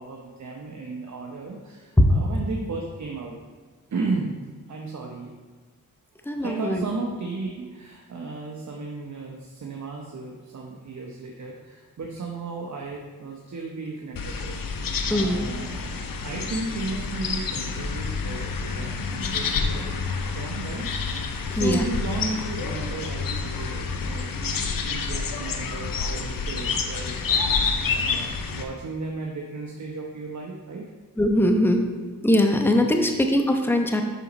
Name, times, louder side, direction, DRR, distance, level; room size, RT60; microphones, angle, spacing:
voice 1, 0.0-3.4 3.9-4.4 4.7-5.3 6.4-15.9 16.2-20.0 20.3-20.9 21.5-30.9 32.9-33.1, right 3 dB, 55° right, 0 dB, 0.9 m, -34 dB
voice 2, 6.3-6.8 15.1-15.5 21.6-21.8 31.2-31.8 32.2-34.0, left 1 dB, 5° left, 4 dB, 0.9 m, -21 dB
sound 1, 14.1-28.6, left 5 dB, 70° left, 0.7 m, -28 dB
6.1 x 5.7 x 4.1 m, 1.4 s
cardioid pair, 50°, 35 cm